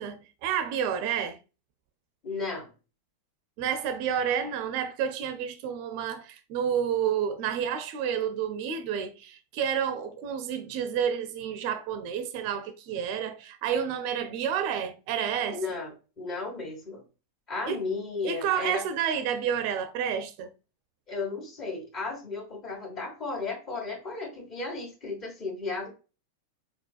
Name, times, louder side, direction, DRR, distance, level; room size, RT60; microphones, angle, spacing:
voice 1, 0.0-1.4 3.6-15.8 17.7-17.8 18.2-20.5, right 8 dB, 45° right, 0.5 m, -30 dB
voice 2, 2.2-2.7 15.5-17.0 17.5-18.8 21.1-25.9, left 3 dB, 35° left, 1.9 m, -34 dB
4.4 x 4.1 x 2.4 m
figure-of-eight pair, 90°, 0 cm